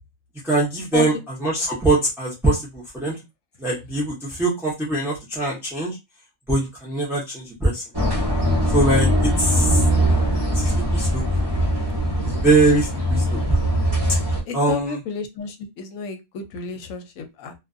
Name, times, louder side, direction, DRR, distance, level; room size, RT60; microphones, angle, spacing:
voice 1, 0.4-3.2 3.6-6.0 6.5-7.8 8.7-9.8 10.5-11.4 12.3-13.6 14.5-15.0, right 2 dB, 5° right, -5 dB, 0.4 m, -22 dB
sound 1, 7.9-14.4, equal, 20° right, 0.9 m, -21 dB
voice 2, 14.5-17.5, left 5 dB, 70° left, 6 dB, 0.9 m, -31 dB
2.5 x 2.3 x 2.5 m, 0.22 s
omnidirectional pair, 1.5 m